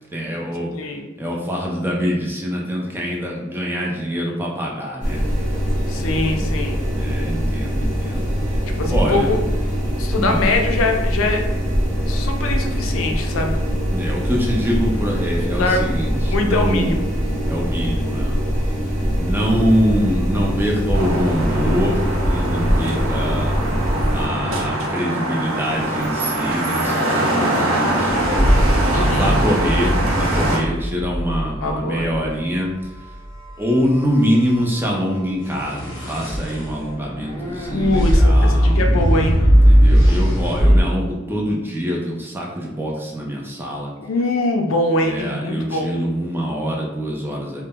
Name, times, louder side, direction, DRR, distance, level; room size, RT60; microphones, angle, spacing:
voice 1, 0.1-0.7 1.2-5.2 6.9-8.3 8.8-9.3 10.2-10.4 13.9-17.0 17.5-18.4 19.2-23.5 24.1-28.3 28.9-32.9 33.6-38.8 39.6-43.9 45.0-47.6, equal, 10° right, -2 dB, 0.4 m, -24 dB
voice 2, 0.7-1.1 5.9-6.8 8.8-9.4 10.0-11.4 12.1-13.6 15.6-16.0 16.3-17.0 28.9-29.4 31.6-32.1 37.7-39.4 44.0-46.0, left 2 dB, 75° left, 4 dB, 0.4 m, -22 dB
sound 1, 5.0-24.3, equal, 40° right, 0.8 m, -22 dB
sound 2, 20.9-30.6, right 1 dB, 85° right, 0.6 m, -22 dB
sound 3, 28.1-32.2 35.5-40.8, equal, 20° left, 0.8 m, -18 dB
2.1 x 2.0 x 3.4 m, 1.1 s
head